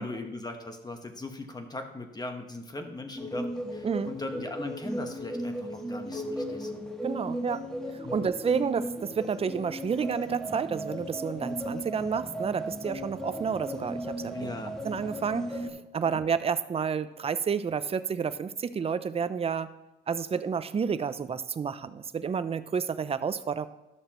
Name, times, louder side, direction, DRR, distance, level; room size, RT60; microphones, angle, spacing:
voice 1, 0.0-6.9 8.0-8.2 14.3-14.7 16.1-16.2, left 2 dB, 20° left, 5 dB, 1.2 m, -39 dB
sound 1, 3.1-15.7, equal, 5° left, 1.4 m, -36 dB
voice 2, 3.8-4.1 7.0-14.5 14.8-19.7 20.1-23.7, right 6 dB, 30° right, 13 dB, 0.5 m, -30 dB
12.5 x 6.5 x 3.0 m, 1.0 s
cardioid pair, 90°, 20 cm